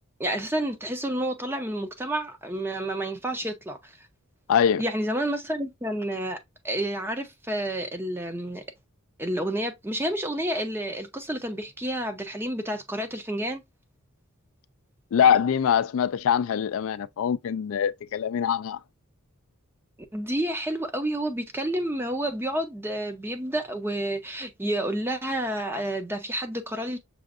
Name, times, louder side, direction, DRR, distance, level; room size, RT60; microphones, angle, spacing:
voice 1, 0.2-3.9 4.8-6.4 6.6-8.6 9.2-13.6 20.1-27.0, right 1 dB, 10° right, 0.6 m, -30 dB
voice 2, 4.5-4.8 15.1-18.8, left 8 dB, 65° left, 0.3 m, -23 dB
6.1 x 2.5 x 2.4 m
head